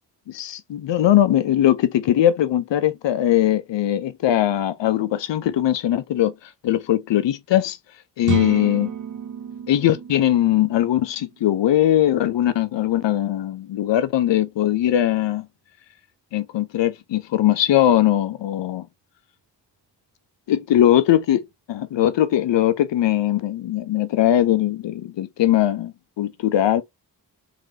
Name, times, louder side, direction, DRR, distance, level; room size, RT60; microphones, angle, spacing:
voice 1, 0.3-6.3 6.6-7.8 8.2-8.9 9.7-15.5 16.3-18.9 20.5-21.4 21.7-26.8, left 12 dB, 75° left, 0.6 m, -20 dB
sound 1, 8.2-12.0, right 9 dB, 45° right, 0.5 m, -31 dB
3.7 x 3.1 x 2.7 m
cardioid pair, 40°, 43 cm